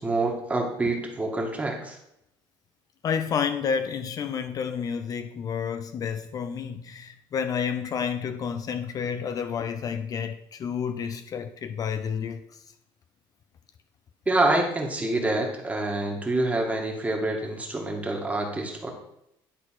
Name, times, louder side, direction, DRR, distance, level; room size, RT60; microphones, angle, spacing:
voice 1, 0.0-2.0 14.3-18.9, right 2 dB, 15° right, 1.8 m, -26 dB
voice 2, 3.0-12.6, left 7 dB, 40° left, 0.5 m, -30 dB
10.5 x 4.0 x 5.8 m
cardioid pair, 125°, 9 cm